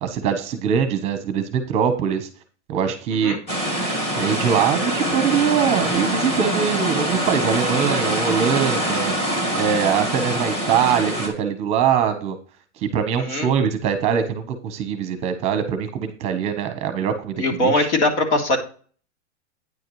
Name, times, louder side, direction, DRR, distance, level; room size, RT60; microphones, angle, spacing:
voice 1, 0.0-2.3 2.7-3.4 4.2-9.1 9.5-12.4 12.8-17.9, right 7 dB, 20° right, 9 dB, 0.9 m, -22 dB
sound 1, 3.5-11.3, equal, 15° left, 1.9 m, -24 dB
voice 2, 13.2-13.5 17.4-18.6, left 2 dB, 85° left, 2 dB, 3.2 m, -21 dB
9.5 x 7.8 x 3.1 m, 0.40 s
supercardioid pair, 170°, 35 cm